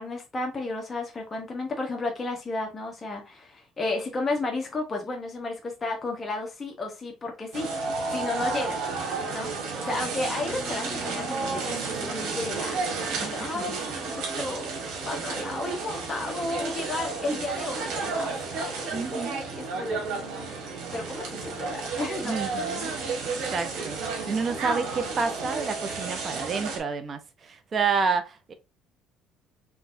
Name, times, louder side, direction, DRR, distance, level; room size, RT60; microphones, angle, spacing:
voice 1, 0.0-7.7 8.1-8.8 9.3-9.5 9.8-22.6, left 2 dB, 25° left, 0.9 m, -33 dB
sound 1, 7.5-26.8, right 4 dB, 75° right, 1.6 m, -32 dB
voice 2, 13.2-13.8 16.5-16.9 17.3-17.4 18.9-19.4 20.7-21.1 22.2-24.0 24.3-28.5, right 5 dB, 40° right, 0.7 m, -30 dB
3.4 x 3.2 x 2.5 m
cardioid pair, 100°, 0 cm